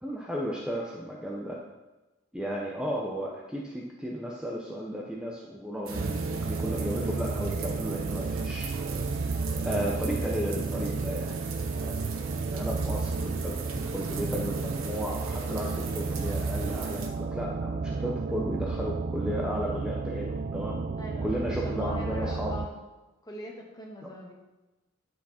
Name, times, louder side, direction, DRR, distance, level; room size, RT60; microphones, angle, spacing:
voice 1, 0.0-1.6 2.3-8.7 9.6-11.3 11.8-11.9 12.5-20.8 21.2-22.5 24.0-24.1, equal, 5° right, -3 dB, 0.8 m, -34 dB
sound 1, 5.9-22.7, right 4 dB, 40° right, 0.4 m, -32 dB
sound 2, 5.9-17.1, right 5 dB, 90° right, 1.2 m, -42 dB
voice 2, 21.0-22.8 23.2-24.3, left 1 dB, 20° left, -1 dB, 1.6 m, -41 dB
10.0 x 6.1 x 4.3 m, 1.1 s
head